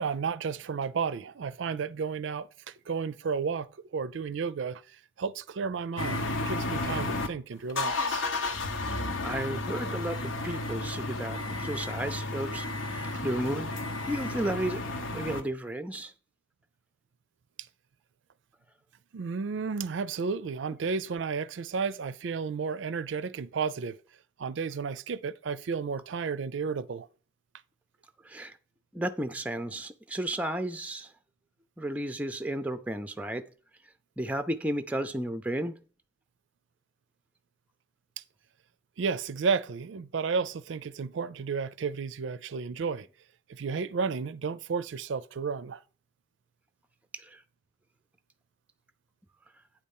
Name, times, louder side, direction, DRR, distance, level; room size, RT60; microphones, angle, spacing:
voice 1, 0.0-4.8 5.2-8.2 19.1-24.0 24.4-27.1 39.0-43.1 43.5-45.8, right 5 dB, 70° right, 0.4 m, -32 dB
sound 1, 6.0-7.3 7.7-15.4, left 2 dB, 80° left, 1.0 m, -32 dB
voice 2, 9.2-13.7 14.1-14.8 15.1-16.1 28.2-28.6 28.9-31.1 31.8-33.4 34.2-35.8 47.1-47.4, right 1 dB, 5° right, 0.5 m, -33 dB
9.0 x 4.3 x 5.4 m
head